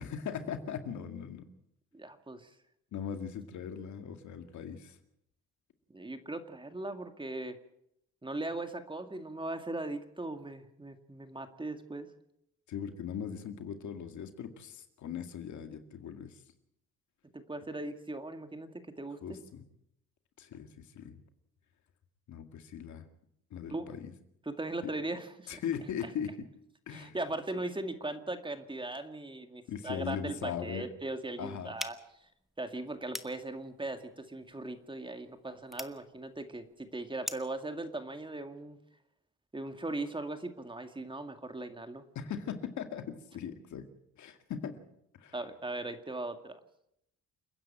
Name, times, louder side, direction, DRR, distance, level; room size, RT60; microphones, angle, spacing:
voice 1, 0.0-1.5 2.9-5.0 12.7-16.4 19.2-19.6 20.4-21.2 22.3-23.1 23.5-24.1 24.8-24.9 25.5-26.5 26.9-27.2 29.7-30.9 31.4-31.7 42.2-43.9 44.2-44.8 45.1-45.4, left 8 dB, 70° left, 7 dB, 2.2 m, -39 dB
voice 2, 1.9-2.5 5.9-7.6 8.2-12.1 17.3-19.4 23.7-23.9 24.5-25.6 26.9-32.0 32.6-38.8 39.5-42.0 45.3-46.6, right 2 dB, 15° right, 8 dB, 2.1 m, -39 dB
sound 1, 31.8-37.6, equal, ahead, 1.3 m, -46 dB
29.0 x 10.0 x 8.9 m, 0.79 s
cardioid pair, 90°, 30 cm